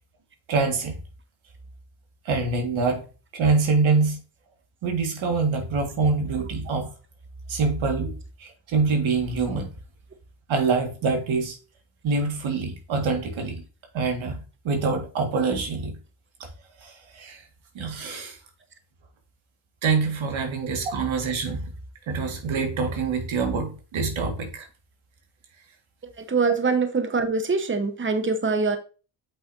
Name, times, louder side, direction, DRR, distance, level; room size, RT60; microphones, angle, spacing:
voice 1, 0.5-1.0 2.3-3.0 3.3-4.2 4.8-6.9 7.5-9.7 10.5-11.6 12.0-13.6 13.9-16.0 16.8-17.4 17.8-18.4 19.8-21.7 22.1-24.7, right 4 dB, 90° right, 1.8 m, -25 dB
voice 2, 26.2-28.8, right 4 dB, 25° right, 1.0 m, -24 dB
8.2 x 5.7 x 2.6 m
cardioid pair, 80°, 46 cm